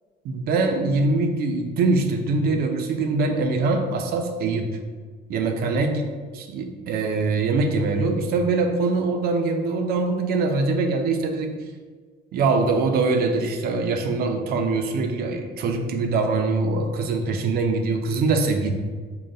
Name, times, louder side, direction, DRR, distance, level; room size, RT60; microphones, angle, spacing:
voice 1, 0.2-4.8 5.3-6.0 6.5-11.6 12.3-18.7, right 3 dB, 65° right, 5 dB, 0.5 m, -23 dB
3.8 x 2.1 x 3.9 m, 1.5 s
cardioid pair, 110°, 17 cm